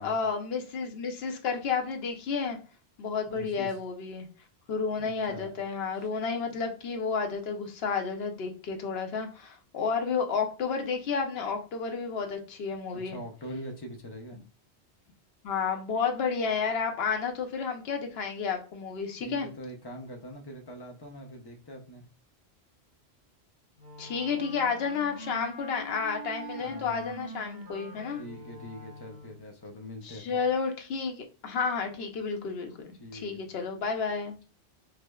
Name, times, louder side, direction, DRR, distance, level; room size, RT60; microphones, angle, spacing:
voice 1, 0.0-2.6 3.0-4.3 4.7-13.2 15.4-19.5 24.0-28.2 30.0-34.4, left 5 dB, 70° left, 0.9 m, -31 dB
voice 2, 3.3-3.8 5.0-5.5 12.9-14.4 19.2-22.0 26.6-27.1 28.2-30.4 33.0-33.4, equal, 30° left, 0.5 m, -43 dB
Wind instrument woodwind instrument, 23.8-29.5, right 1 dB, 65° right, 1.9 m, -44 dB
4.8 x 2.0 x 2.2 m
omnidirectional pair, 1.1 m